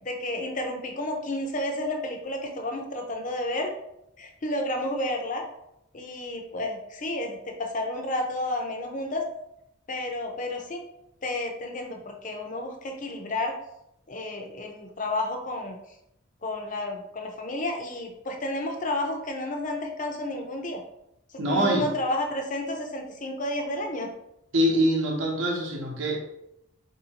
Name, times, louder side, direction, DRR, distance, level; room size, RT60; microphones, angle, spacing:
voice 1, 0.0-3.7 4.2-5.4 5.9-9.2 9.9-10.8 11.2-13.6 14.1-15.8 16.4-20.8 21.3-24.1, left 1 dB, 40° left, 0.6 m, -31 dB
voice 2, 21.4-21.9 24.5-26.2, equal, 70° right, 0.7 m, -24 dB
4.2 x 2.7 x 2.8 m
head